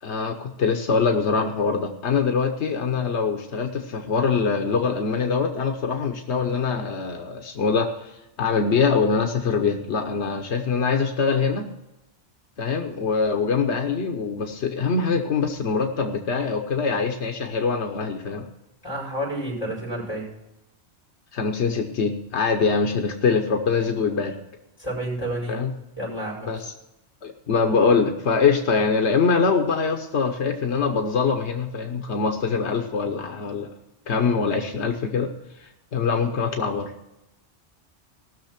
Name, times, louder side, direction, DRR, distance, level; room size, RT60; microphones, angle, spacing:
voice 1, 0.0-11.7 12.6-18.5 21.3-24.3 25.5-25.7 26.5-26.7 27.2-33.7 34.1-35.3 35.6-36.9, left 5 dB, 85° left, 4 dB, 1.3 m, -23 dB
voice 2, 18.8-20.3 24.8-25.6 26.0-26.5, right 1 dB, 20° left, -3 dB, 5.6 m, -30 dB
18.5 x 6.5 x 5.9 m, 0.91 s
omnidirectional pair, 1.1 m